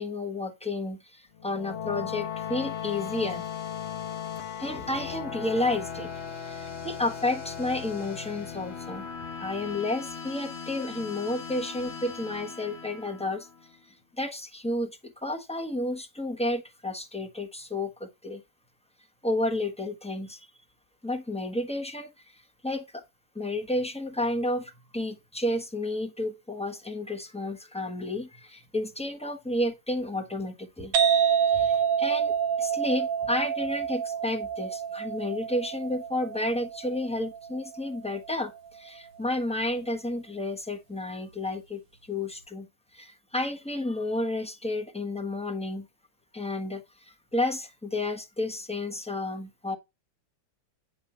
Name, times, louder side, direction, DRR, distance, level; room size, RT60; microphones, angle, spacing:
voice 1, 0.0-3.5 4.6-9.1 9.4-13.5 14.2-18.4 19.2-20.5 21.0-22.1 22.6-23.0 23.3-30.9 31.5-32.3 32.6-41.8 42.1-42.7 42.9-45.9 46.3-49.8, left 1 dB, 5° left, 0.9 m, -31 dB
sound 1, 1.3-13.7, left 7 dB, 55° left, 0.8 m, -38 dB
sound 2, 30.9-38.4, right 8 dB, 75° right, 1.6 m, -27 dB
9.6 x 4.0 x 5.8 m
omnidirectional pair, 2.1 m